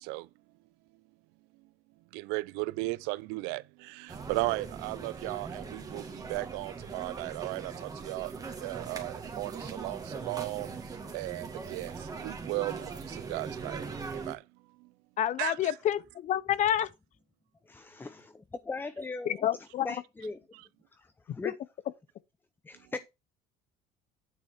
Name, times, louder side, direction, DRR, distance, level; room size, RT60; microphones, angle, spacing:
voice 1, 2.1-8.3 8.6-10.7 11.1-11.9 12.2-13.8 14.3-14.4 15.4-15.7, right 23 dB, 80° right, 0.5 m, -36 dB
sound 1, 4.1-14.4, right 5 dB, 20° right, 2.2 m, -40 dB
voice 2, 15.2-16.9 19.3-19.9, left 11 dB, 50° left, 0.8 m, -28 dB
voice 3, 17.7-20.4 20.9-21.6 22.6-23.1, left 3 dB, 10° left, 0.5 m, -40 dB
9.6 x 5.5 x 4.7 m
cardioid pair, 115°, 17 cm